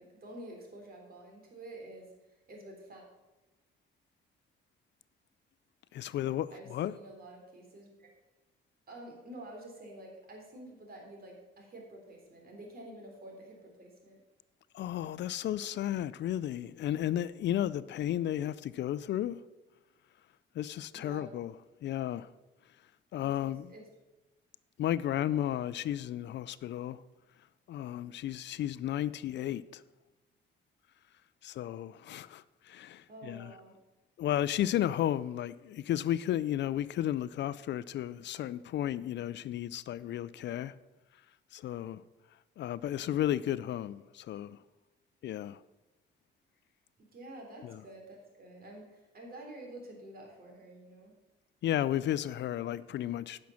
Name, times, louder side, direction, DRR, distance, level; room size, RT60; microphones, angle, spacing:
voice 1, 0.0-3.0 6.5-8.1 8.9-14.2 20.9-21.3 23.2-23.8 33.1-33.8 47.0-51.1, right 1 dB, 50° right, 3.5 m, -49 dB
voice 2, 5.9-7.0 14.7-19.4 20.6-21.5 21.8-22.3 23.1-23.7 24.8-27.0 27.7-29.8 31.4-33.5 34.2-40.7 41.5-42.0 42.6-44.6 45.2-45.6 47.6-47.8 51.6-53.4, left 12 dB, 65° left, 0.4 m, -33 dB
10.5 x 6.3 x 7.1 m
cardioid pair, 90°, 20 cm